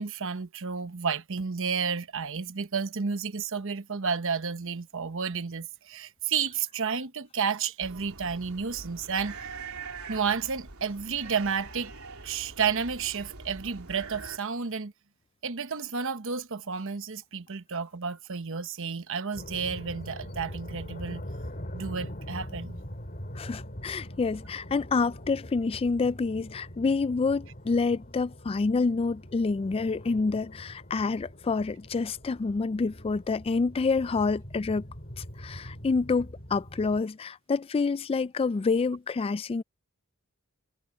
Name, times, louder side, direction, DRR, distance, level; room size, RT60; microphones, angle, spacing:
voice 1, 0.0-9.3 10.1-11.9 12.2-14.9 15.4-21.2 21.7-22.8, right 6 dB, 65° right, 1.1 m, -31 dB
sound 1, 7.8-14.4, right 4 dB, 85° right, 3.1 m, -43 dB
sound 2, 19.3-37.0, equal, 40° left, 6.1 m, -43 dB
voice 2, 23.4-34.9 35.2-39.6, left 4 dB, 25° left, 0.3 m, -28 dB
head